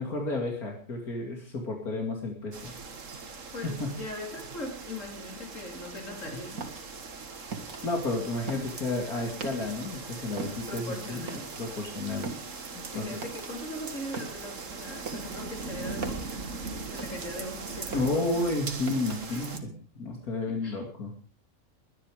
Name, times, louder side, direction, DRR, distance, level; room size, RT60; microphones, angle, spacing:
voice 1, 0.0-2.7 3.6-3.9 7.8-11.3 11.6-12.3 12.9-13.1 17.9-19.6 20.0-21.1, left 2 dB, 80° left, 2 dB, 3.1 m, -31 dB
sound 1, 2.5-19.6, right 4 dB, 60° right, 2.0 m, -40 dB
voice 2, 3.5-6.6 10.7-11.5 12.9-16.4 16.9-18.4 19.3-19.8 20.5-20.8, left 1 dB, 55° left, 2 dB, 4.0 m, -40 dB
sound 2, 6.6-10.0 10.3-17.5 17.8-19.5, right 4 dB, 80° right, 2.5 m, -41 dB
21.5 x 9.9 x 5.1 m, 0.40 s
omnidirectional pair, 1.5 m